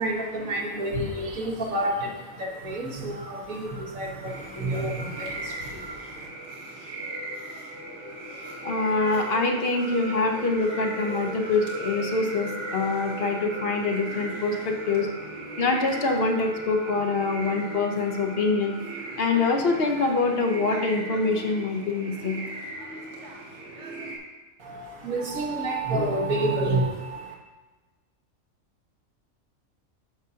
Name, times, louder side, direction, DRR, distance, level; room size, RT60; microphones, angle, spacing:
voice 1, 0.0-6.3 24.6-27.3, right 1 dB, 80° right, -2 dB, 1.8 m, -29 dB
sound 1, 4.3-24.2, right 1 dB, 60° right, 1.5 m, -37 dB
voice 2, 8.6-15.1 15.6-18.7 19.2-22.4, left 3 dB, 50° left, 3 dB, 1.0 m, -25 dB
9.9 x 6.3 x 2.8 m, 1.3 s
omnidirectional pair, 1.4 m